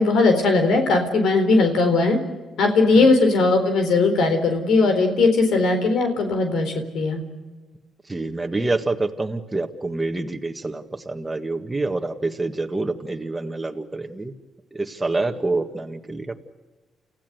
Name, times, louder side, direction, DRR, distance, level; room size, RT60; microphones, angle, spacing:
voice 1, 0.0-2.2 2.6-7.2, left 3 dB, 75° left, 6 dB, 4.0 m, -19 dB
voice 2, 8.1-14.3 14.7-16.3, right 2 dB, 15° right, 3 dB, 1.8 m, -27 dB
29.5 x 15.0 x 8.1 m, 1.2 s
cardioid pair, 90°, 0 cm